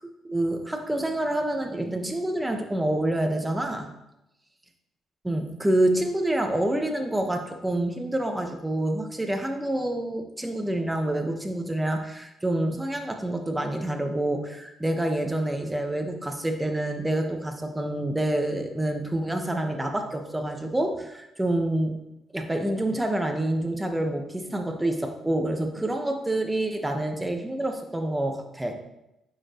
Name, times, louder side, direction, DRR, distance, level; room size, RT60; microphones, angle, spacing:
voice 1, 0.2-3.9 5.2-22.0 22.3-28.8, right 1 dB, 10° right, 3 dB, 1.3 m, -27 dB
9.5 x 7.0 x 3.1 m, 0.87 s
cardioid pair, 90°, 0 cm